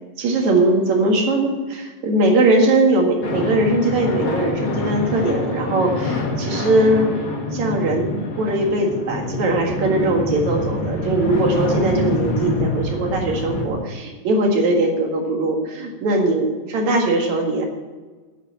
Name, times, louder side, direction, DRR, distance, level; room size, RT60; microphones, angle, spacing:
voice 1, 0.2-7.2 7.5-17.7, right 2 dB, 60° right, 1 dB, 3.0 m, -20 dB
sound 1, 3.2-13.7, left 2 dB, 45° left, 2.3 m, -25 dB
9.3 x 8.3 x 8.5 m, 1.3 s
omnidirectional pair, 3.8 m